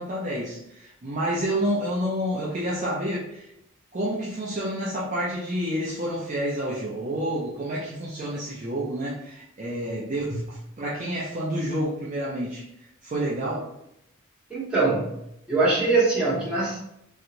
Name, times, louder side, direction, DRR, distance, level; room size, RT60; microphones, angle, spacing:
voice 1, 0.0-3.5 3.9-12.6 13.0-13.7, equal, 35° right, -6 dB, 0.5 m, -29 dB
voice 2, 14.5-15.1 15.5-16.8, right 3 dB, 5° right, -9 dB, 1.3 m, -22 dB
3.1 x 2.8 x 2.5 m, 0.79 s
head